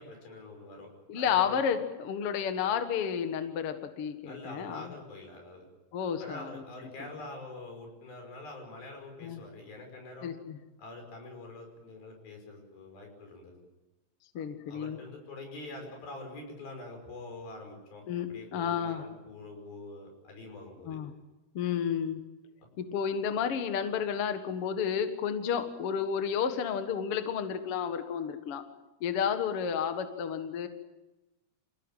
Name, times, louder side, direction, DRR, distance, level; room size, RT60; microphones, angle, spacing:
voice 1, 0.0-1.6 4.2-5.7 6.2-10.3 10.8-13.5 14.4-21.0, left 2 dB, 90° left, 3 dB, 7.6 m, -45 dB
voice 2, 1.1-4.9 5.9-6.5 9.2-9.4 10.2-10.6 14.3-15.0 18.1-18.3 18.5-19.0 20.9-21.1 21.5-22.2 22.8-28.6 29.0-30.7, left 7 dB, 50° left, 8 dB, 2.0 m, -31 dB
27.5 x 17.0 x 9.1 m, 1.1 s
omnidirectional pair, 4.1 m